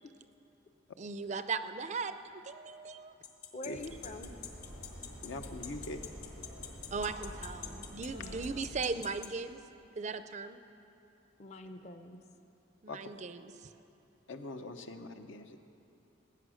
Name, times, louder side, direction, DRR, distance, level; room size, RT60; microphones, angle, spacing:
voice 1, 1.0-3.1 6.9-9.6 10.0-10.6 12.8-13.5, right 4 dB, 35° right, 11 dB, 0.4 m, -38 dB
sound 1, 3.2-9.3, left 10 dB, 50° left, 1.3 m, -44 dB
voice 2, 3.5-4.3 8.1-8.7 11.4-12.2, left 1 dB, 35° left, 8 dB, 0.7 m, -46 dB
sound 2, 3.7-8.8, equal, 85° left, 2.7 m, -47 dB
voice 3, 5.2-6.0 6.4-6.7 12.9-13.0 14.3-15.6, left 2 dB, 65° left, 7 dB, 0.8 m, -43 dB
19.0 x 8.9 x 6.3 m, 2.9 s
head